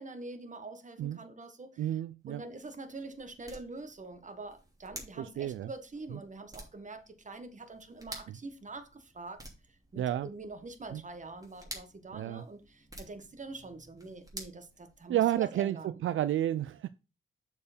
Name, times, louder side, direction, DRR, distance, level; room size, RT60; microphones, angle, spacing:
voice 1, 0.0-1.9 2.3-9.4 9.7-16.0, right 3 dB, 35° right, 1.4 m, -45 dB
voice 2, 1.8-2.4 5.2-5.7 10.0-10.3 10.9-11.0 12.1-12.4 15.1-15.8 16.0-16.9, right 12 dB, 70° right, 0.4 m, -30 dB
sound 1, 2.2-15.4, right 1 dB, 15° right, 3.0 m, -51 dB
6.7 x 4.7 x 5.1 m
cardioid pair, 65°, 21 cm